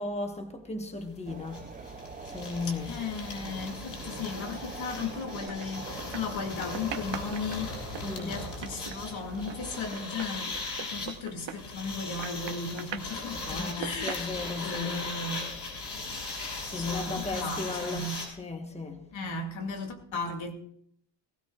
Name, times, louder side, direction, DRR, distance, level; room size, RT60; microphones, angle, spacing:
voice 1, 0.0-2.0 2.3-2.9 8.0-8.4 13.4-15.1 16.6-18.1 18.4-19.1, left 3 dB, 15° left, 1.1 m, -36 dB
sound 1, 1.0-1.1 1.3-18.3, left 3 dB, 65° left, 5.9 m, -39 dB
sound 2, 1.3-9.9, right 4 dB, 20° right, 0.5 m, -45 dB
voice 2, 2.9-10.6 10.9-14.3 14.6-15.5 16.8-18.1 19.1-20.5, left 3 dB, 90° left, 2.3 m, -36 dB
sound 3, 5.4-6.5 6.7-11.9 12.2-13.2 13.6-14.8, right 9 dB, 75° right, 1.1 m, -41 dB
18.5 x 17.0 x 2.4 m
wide cardioid pair, 165°, 45 cm